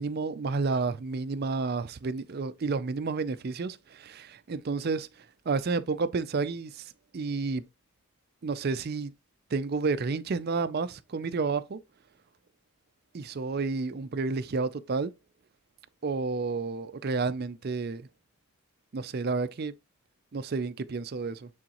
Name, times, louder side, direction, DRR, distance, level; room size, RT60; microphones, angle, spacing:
voice 1, 0.0-7.6 8.4-9.1 9.5-11.8 13.1-15.1 16.0-18.1 18.9-19.7 20.3-21.5, right 4 dB, 45° right, 0.4 m, -31 dB
8.6 x 3.8 x 3.0 m
head